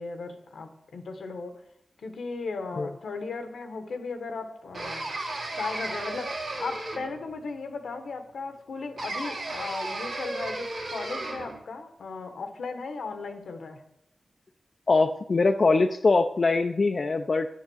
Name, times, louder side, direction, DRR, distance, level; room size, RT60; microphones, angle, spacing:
voice 1, 0.0-1.6 2.0-5.1 5.5-13.8, left 4 dB, 90° left, 7 dB, 1.2 m, -36 dB
sound 1, 4.7-7.3 9.0-11.6, right 2 dB, 85° right, 2.2 m, -34 dB
voice 2, 14.9-17.5, left 3 dB, 60° left, 6 dB, 0.5 m, -22 dB
8.9 x 7.3 x 6.3 m, 0.77 s
cardioid pair, 45°, 0 cm